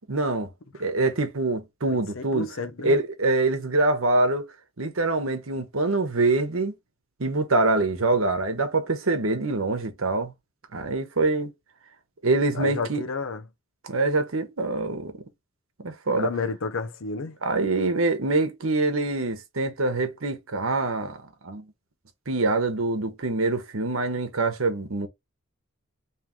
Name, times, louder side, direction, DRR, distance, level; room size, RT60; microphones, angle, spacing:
voice 1, 0.1-0.5 0.8-2.5 2.8-4.5 4.8-6.7 7.2-10.3 10.7-11.5 12.2-13.0 13.8-15.3 15.8-16.3 17.4-21.2 21.4-21.6 22.3-25.1, right 2 dB, 75° right, 1.1 m, -25 dB
voice 2, 1.9-3.0 12.5-13.4 16.2-17.4, left 4 dB, 65° left, 0.6 m, -31 dB
3.1 x 2.9 x 3.6 m
head